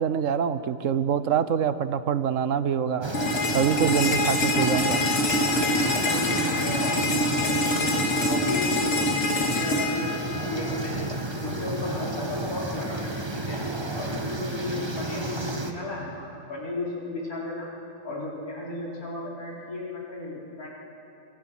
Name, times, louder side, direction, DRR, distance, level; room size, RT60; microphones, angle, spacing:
voice 1, 0.0-3.1 3.5-5.0, right 8 dB, 65° right, 13 dB, 1.1 m, -25 dB
sound 1, 3.0-15.7, right 2 dB, 20° right, 1.2 m, -32 dB
sound 2, 3.1-11.1, left 1 dB, 55° left, 2.0 m, -25 dB
voice 2, 5.8-10.9 11.4-13.6 14.0-17.7 18.0-20.7, left 2 dB, 85° left, -4 dB, 4.9 m, -35 dB
24.5 x 24.0 x 6.1 m, 2.9 s
omnidirectional pair, 1.5 m